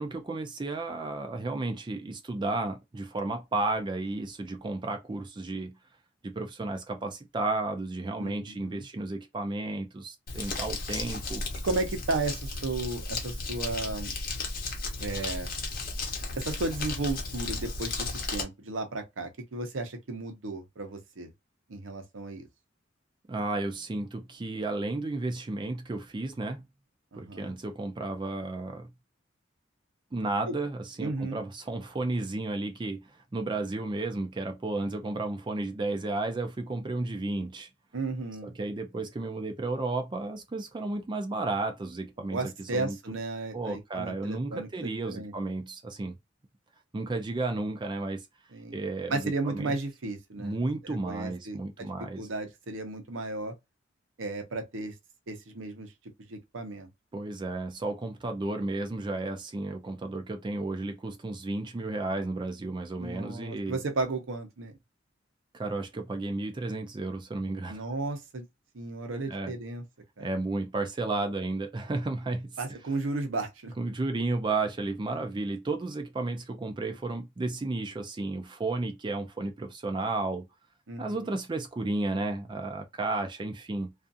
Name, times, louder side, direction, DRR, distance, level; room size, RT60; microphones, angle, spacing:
voice 1, 0.0-5.7 6.2-11.4 23.3-26.6 27.1-28.9 30.1-37.7 38.4-42.4 42.7-43.0 43.5-46.2 46.9-48.3 48.7-49.7 50.4-52.3 57.1-63.8 65.5-67.8 69.3-69.5 70.2-72.5 73.8-80.5 81.0-83.9, right 2 dB, 25° right, 0.4 m, -33 dB
voice 2, 8.2-8.9 11.6-14.1 15.0-15.5 16.4-21.3 21.7-22.5 27.1-27.6 30.5-30.6 31.0-31.4 37.9-38.6 42.3-45.3 48.5-48.8 49.1-50.6 50.8-51.9 52.2-53.5 54.2-54.9 55.3-55.9 56.3-56.9 63.0-64.7 67.7-68.5 68.7-69.8 70.2-70.3 72.6-73.7 80.9-81.3, right 3 dB, 90° right, 0.7 m, -34 dB
Crumpling crinkling, 10.3-18.4, left 3 dB, 50° left, 0.8 m, -34 dB
2.4 x 2.4 x 2.5 m
head